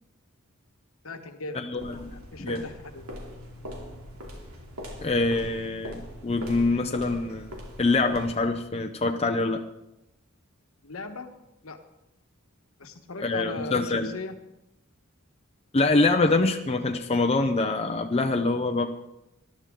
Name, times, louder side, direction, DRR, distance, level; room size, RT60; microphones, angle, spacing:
voice 1, 1.0-1.6 2.1-3.1 10.8-11.3 11.6-11.8 12.8-14.3, left 3 dB, 70° left, 6 dB, 1.3 m, -38 dB
voice 2, 1.5-2.6 5.0-7.5 7.8-9.6 13.2-14.1 15.7-18.9, left 3 dB, 30° left, 5 dB, 0.6 m, -25 dB
sound 1, 1.8-8.6, equal, 85° right, 2.9 m, -41 dB
19.5 x 12.0 x 3.7 m, 0.90 s
head